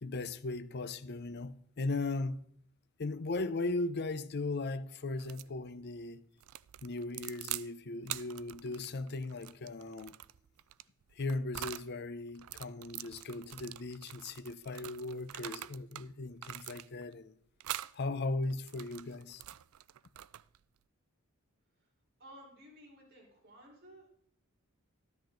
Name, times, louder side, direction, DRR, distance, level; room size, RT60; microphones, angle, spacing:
voice 1, 0.0-2.4 3.0-6.2 6.8-10.2 11.1-17.3 17.9-19.4, left 2 dB, 50° left, 0.6 m, -37 dB
sound 1, 5.2-5.5 6.4-7.7 8.0-11.9 12.4-16.1 16.4-17.1 17.6-18.0 18.5-20.6, right 14 dB, 90° right, 0.4 m, -44 dB
voice 2, 22.2-24.1, equal, 50° right, 4.4 m, -55 dB
14.0 x 12.5 x 3.9 m
head